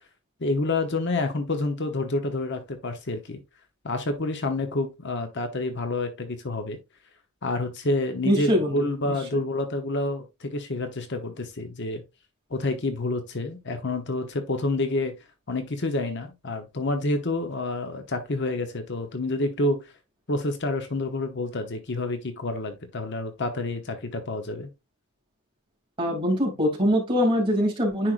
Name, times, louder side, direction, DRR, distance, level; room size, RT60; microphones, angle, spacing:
voice 1, 0.4-3.4 3.8-6.8 7.4-12.0 12.5-15.2 15.5-19.9 20.3-24.7, left 2 dB, 50° left, 1.0 m, -28 dB
voice 2, 8.2-8.8 9.0-9.2 26.0-28.1, equal, 25° right, 2.8 m, -23 dB
10.0 x 4.7 x 2.5 m
head